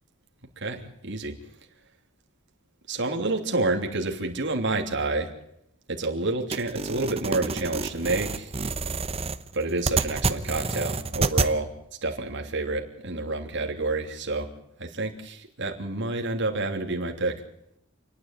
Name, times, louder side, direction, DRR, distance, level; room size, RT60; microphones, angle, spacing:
voice 1, 0.6-1.3 2.9-5.3 5.9-8.5 9.5-11.7 12.0-14.5 14.8-17.4, right 2 dB, 55° right, 3 dB, 3.1 m, -28 dB
sound 1, 6.5-11.5, right 3 dB, 30° right, 0.9 m, -28 dB
28.5 x 10.0 x 9.2 m, 0.79 s
head